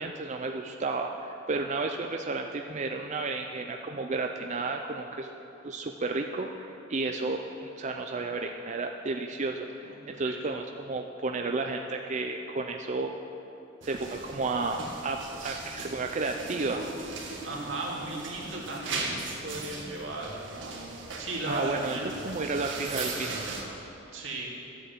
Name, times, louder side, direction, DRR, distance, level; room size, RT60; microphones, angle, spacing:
voice 1, 0.0-5.3 5.6-13.1 13.8-16.8 21.5-22.0 22.2-23.5, right 3 dB, 40° right, 3 dB, 0.5 m, -32 dB
voice 2, 9.8-10.3 17.4-20.3 21.2-22.0 24.1-24.5, right 2 dB, 85° right, -3 dB, 2.5 m, -36 dB
sound 1, 13.8-23.6, right 3 dB, 70° right, 1.8 m, -38 dB
12.5 x 8.2 x 7.5 m, 2.9 s
head